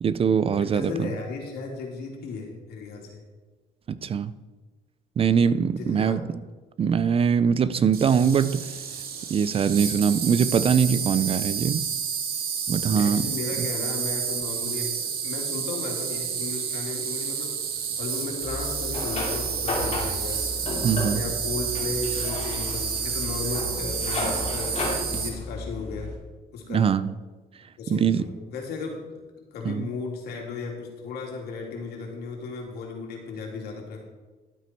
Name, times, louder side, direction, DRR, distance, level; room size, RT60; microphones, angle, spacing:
voice 1, 0.0-1.1 3.9-4.3 5.2-6.4 6.8-8.8 9.3-11.9 12.7-13.3 13.6-13.7 20.8-21.2 26.7-27.2 27.9-28.3 29.6-29.9, right 7 dB, 35° right, 16 dB, 0.4 m, -22 dB
voice 2, 0.5-3.2 5.7-6.2 12.8-17.5 18.0-20.4 21.1-26.1 26.5-26.8 27.8-29.2 29.5-34.0, left 4 dB, 70° left, 0 dB, 2.9 m, -35 dB
Insect, 7.9-25.3, right 7 dB, 65° right, 1.7 m, -30 dB
sound 1, 18.4-26.2, left 2 dB, 40° left, 2.5 m, -33 dB
12.0 x 8.3 x 4.5 m, 1.2 s
cardioid pair, 110°, 17 cm